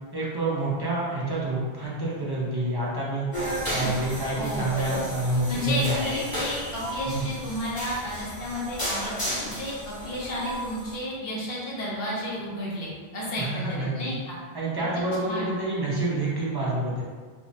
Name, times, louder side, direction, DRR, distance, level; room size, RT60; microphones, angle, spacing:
voice 1, 0.1-3.3 3.7-6.2 7.1-7.4 13.4-14.1 14.5-17.0, right 2 dB, 35° right, -7 dB, 0.4 m, -28 dB
sound 1, 3.3-11.0, equal, 25° left, 0.8 m, -33 dB
voice 2, 4.4-4.9 5.5-14.4 15.3-15.5, left 1 dB, 70° left, -7 dB, 1.1 m, -32 dB
3.2 x 2.0 x 2.7 m, 1.5 s
omnidirectional pair, 1.0 m